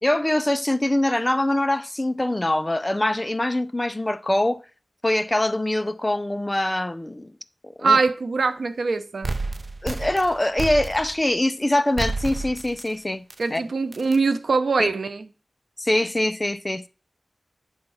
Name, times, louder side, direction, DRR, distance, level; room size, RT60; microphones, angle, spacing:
voice 1, 0.0-4.6 5.0-7.3 7.6-8.0 9.8-13.6 14.8-14.9 15.8-16.9, left 1 dB, 20° left, 0.5 m, -23 dB
voice 2, 7.8-9.3 13.4-15.2, right 4 dB, 80° right, 0.7 m, -22 dB
sound 1, 9.2-11.3 12.0-12.9 13.3-13.4 13.9-14.2, right 3 dB, 45° right, 0.6 m, -30 dB
8.8 x 3.6 x 5.5 m
wide cardioid pair, 80°, 0 cm